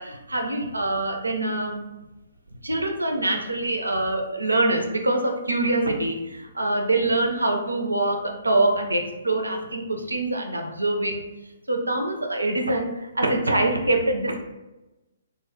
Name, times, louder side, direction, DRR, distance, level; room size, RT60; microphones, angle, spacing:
voice 1, 0.0-1.8 2.6-11.2 11.7-14.4, right 2 dB, 80° right, 3 dB, 0.4 m, -24 dB
2.1 x 2.1 x 3.0 m, 1.0 s
figure-of-eight pair, 125°, 0 cm